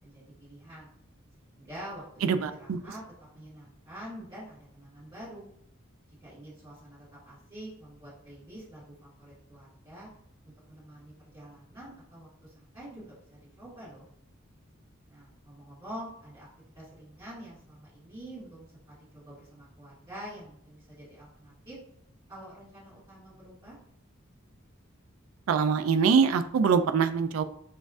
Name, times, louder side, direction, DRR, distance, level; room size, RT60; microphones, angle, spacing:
voice 1, 0.0-0.9 1.4-2.3 2.6-3.0 3.3-5.5 6.2-10.1 10.7-14.1 15.1-16.5 16.7-21.8 22.3-23.8, right 1 dB, 25° right, -12 dB, 1.5 m, -46 dB
voice 2, 2.2-2.8 25.5-27.4, right 6 dB, 80° right, 10 dB, 0.3 m, -24 dB
6.3 x 2.4 x 2.4 m, 0.70 s
head